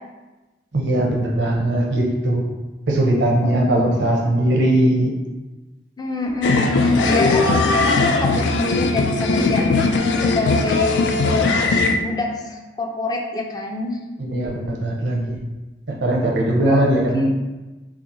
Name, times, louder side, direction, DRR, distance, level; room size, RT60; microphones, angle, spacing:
voice 1, 0.7-2.5 2.9-5.1 14.2-15.4 16.0-17.3, right 1 dB, 85° right, -2 dB, 0.7 m, -19 dB
voice 2, 6.0-9.6 10.2-11.4 12.0-14.0 16.7-16.8 17.1-17.2, left 2 dB, 25° left, 1 dB, 0.4 m, -25 dB
sound 1, 6.4-12.0, left 3 dB, 90° left, 0.3 m, -19 dB
2.8 x 2.4 x 3.8 m, 1.1 s
head